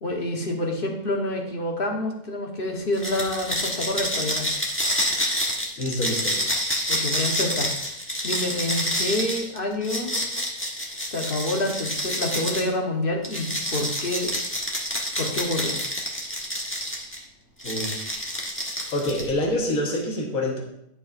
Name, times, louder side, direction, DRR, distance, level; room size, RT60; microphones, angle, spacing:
voice 1, 0.0-4.5 6.9-7.7 8.2-10.1 11.0-14.3 15.2-15.8, left 1 dB, 35° left, 1 dB, 1.4 m, -27 dB
sound 1, 2.9-12.7 13.2-17.2 17.6-19.4, equal, 10° left, 1.1 m, -28 dB
voice 2, 5.8-6.5 17.6-17.9 18.9-20.6, left 1 dB, 60° left, 0 dB, 1.8 m, -26 dB
11.0 x 7.1 x 2.6 m, 0.78 s
omnidirectional pair, 1.7 m